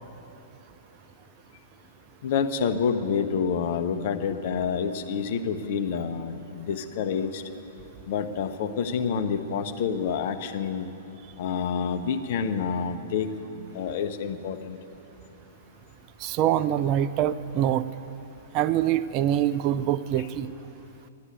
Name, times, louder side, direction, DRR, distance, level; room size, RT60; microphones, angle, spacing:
voice 1, 2.2-7.4 8.1-10.9 11.4-13.3 13.7-14.8, left 6 dB, 55° left, 8 dB, 1.0 m, -28 dB
voice 2, 16.2-17.8 18.5-20.5, right 11 dB, 35° right, 13 dB, 0.5 m, -24 dB
12.5 x 9.8 x 9.2 m, 2.8 s
figure-of-eight pair, 110°, 0 cm